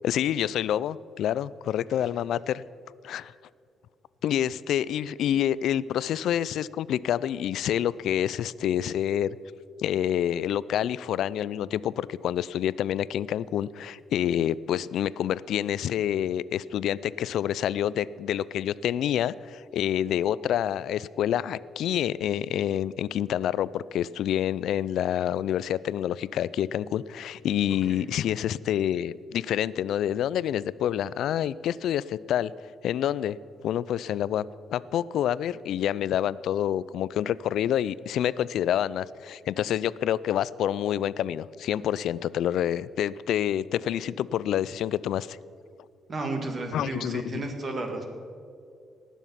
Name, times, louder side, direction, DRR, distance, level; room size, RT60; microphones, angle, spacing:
voice 1, 0.0-2.7 3.0-3.3 4.2-9.4 9.8-32.5 32.8-33.4 33.6-34.4 34.7-45.4 46.7-47.4, left 10 dB, 75° left, 19 dB, 0.3 m, -27 dB
voice 2, 46.1-48.0, right 2 dB, 45° right, 3 dB, 2.2 m, -33 dB
19.0 x 7.2 x 5.7 m, 2.3 s
cardioid pair, 90°, 0 cm